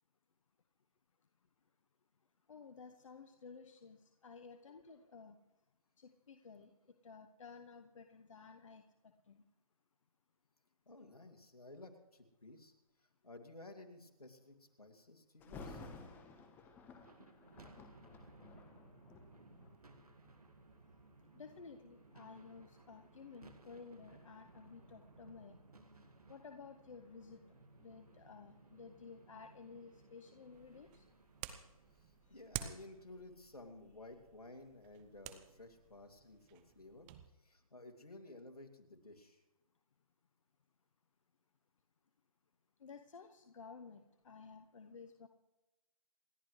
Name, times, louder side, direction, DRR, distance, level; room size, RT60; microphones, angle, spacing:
voice 1, 2.5-5.3 6.0-6.7 7.0-8.8 9.3-9.4 21.3-25.5 26.3-31.0 42.8-45.3, left 5 dB, 60° left, 6 dB, 1.1 m, -54 dB
voice 2, 10.9-12.7 13.2-15.8 32.0-37.1 37.4-39.4, left 2 dB, 90° left, 5 dB, 2.6 m, -55 dB
Thunder, 15.4-20.4 21.0-21.3 21.9-24.7 25.1-25.2, left 3 dB, 10° left, 1.2 m, -55 dB
sound 1, 17.0-33.4, right 2 dB, 85° right, 2.1 m, -62 dB
sound 2, 30.5-37.3, right 11 dB, 15° right, 0.6 m, -51 dB
28.0 x 11.5 x 3.3 m, 1.0 s
figure-of-eight pair, 150°, 19 cm